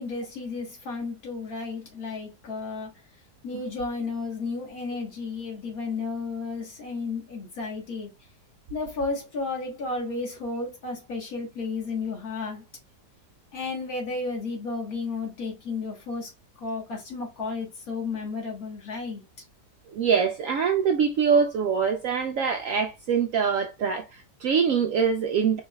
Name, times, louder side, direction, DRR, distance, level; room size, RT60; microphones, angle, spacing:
voice 1, 0.0-2.9 3.4-8.1 8.7-12.6 13.5-16.3 16.6-19.2, left 3 dB, 60° left, 1.8 m, -33 dB
voice 2, 19.9-25.6, right 6 dB, 70° right, 0.8 m, -24 dB
4.6 x 3.0 x 2.3 m
omnidirectional pair, 1.8 m